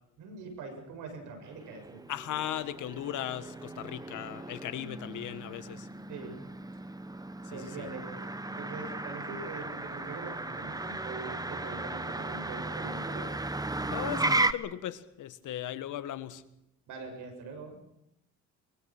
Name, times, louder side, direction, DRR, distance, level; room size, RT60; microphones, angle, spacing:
voice 1, 0.2-2.0 6.1-6.4 7.5-8.2 8.6-13.3 16.9-17.8, right 4 dB, 85° right, 4 dB, 7.3 m, -43 dB
Motor vehicle (road), 1.4-14.5, right 2 dB, 10° right, 1.1 m, -35 dB
voice 2, 2.1-5.9 7.5-7.9 13.9-16.4, left 12 dB, 80° left, 11 dB, 1.7 m, -37 dB
23.5 x 23.5 x 6.2 m, 0.81 s
cardioid pair, 90°, 30 cm